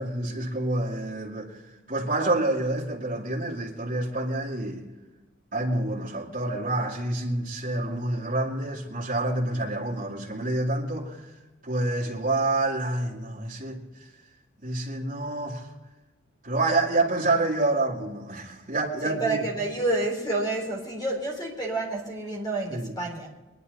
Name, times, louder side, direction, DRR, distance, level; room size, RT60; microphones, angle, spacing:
voice 1, 0.0-1.6 1.9-4.9 5.5-11.3 11.6-14.1 14.6-15.7 16.4-19.4 22.7-22.9, right 2 dB, 40° right, 2.2 m, -28 dB
voice 2, 19.0-23.3, right 2 dB, 20° left, 3.6 m, -29 dB
22.5 x 11.0 x 4.1 m
head